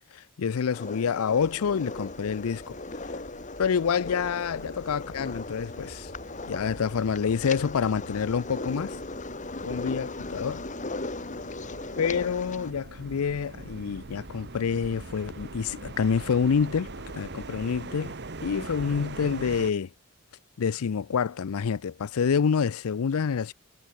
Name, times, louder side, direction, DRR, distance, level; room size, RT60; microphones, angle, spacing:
voice 1, 0.1-2.8 3.6-6.1 6.5-9.0 9.6-10.6 12.0-18.1 18.4-19.9 20.6-23.5, left 6 dB, 80° left, 0.5 m, -27 dB
sound 1, 0.7-12.7, left 2 dB, 35° left, 1.9 m, -38 dB
sound 2, 1.4-19.7, right 2 dB, 50° right, 1.3 m, -43 dB
head